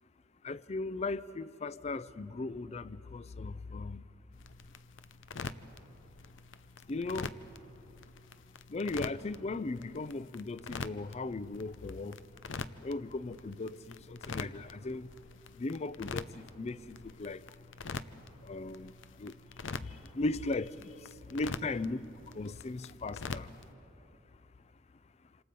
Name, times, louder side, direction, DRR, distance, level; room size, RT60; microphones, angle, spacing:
voice 1, 0.4-4.0 6.9-7.4 8.7-12.2 12.8-13.8 14.1-15.1 15.6-17.4 18.5-18.9 19.2-19.3 20.2-20.7 21.3-22.0 22.3-23.5, left 3 dB, 35° left, 0.5 m, -37 dB
sound 1, 4.3-23.7, left 4 dB, 75° left, 0.7 m, -45 dB
27.0 x 27.0 x 5.4 m
head